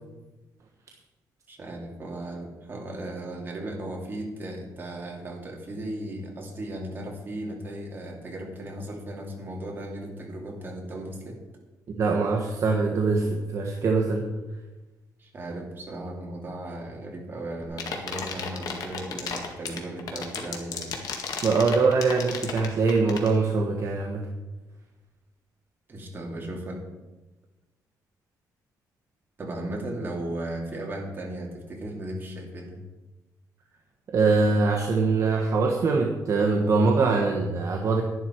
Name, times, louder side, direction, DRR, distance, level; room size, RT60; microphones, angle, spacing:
voice 1, 1.5-11.4 15.2-21.0 25.9-26.9 29.4-32.8, right 1 dB, 30° right, -1 dB, 2.7 m, -36 dB
voice 2, 12.0-14.3 21.4-24.3 34.1-38.0, right 4 dB, 45° right, 0 dB, 1.3 m, -23 dB
sound 1, 17.6-23.3, left 6 dB, 65° left, 1.9 m, -32 dB
11.0 x 11.0 x 4.6 m, 1.1 s
cardioid pair, 135°, 7 cm